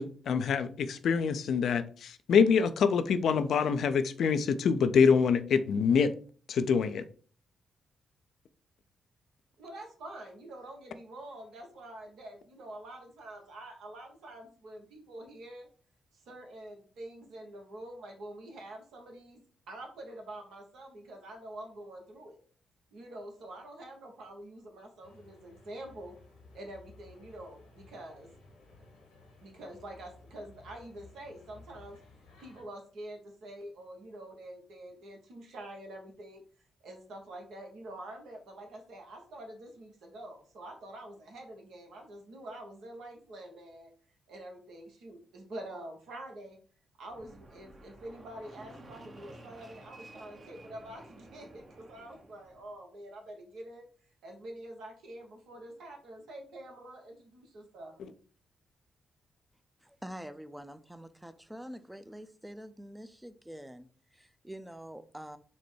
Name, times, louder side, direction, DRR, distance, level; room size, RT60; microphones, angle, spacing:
voice 1, 0.0-6.1 6.5-7.0 58.0-58.1, left 6 dB, 65° left, 0.4 m, -25 dB
voice 2, 9.6-15.7 16.3-22.4 22.9-26.2 26.5-28.3 29.4-32.0 32.4-36.4 36.8-43.9 44.3-46.6 47.0-53.9 54.2-58.0, right 1 dB, 70° right, 1.0 m, -46 dB
sound 1, 25.0-32.6, left 3 dB, 85° left, 1.3 m, -57 dB
Fixed-wing aircraft airplane, 47.1-52.7, right 1 dB, 45° right, 1.0 m, -53 dB
voice 3, 59.8-65.4, equal, 10° right, 0.5 m, -46 dB
4.1 x 2.2 x 4.5 m
hypercardioid pair, 40°, 0 cm